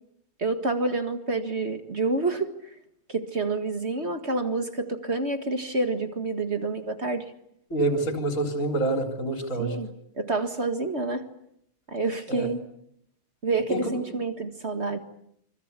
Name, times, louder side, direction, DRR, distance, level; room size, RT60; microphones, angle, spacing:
voice 1, 0.4-2.5 3.1-7.3 9.6-11.2 11.9-12.6 13.4-15.0, right 3 dB, 30° right, 8 dB, 1.2 m, -28 dB
voice 2, 7.7-9.8 12.3-12.5 13.7-13.8, right 2 dB, 25° left, 4 dB, 4.0 m, -26 dB
27.5 x 25.5 x 8.3 m, 0.73 s
omnidirectional pair, 3.7 m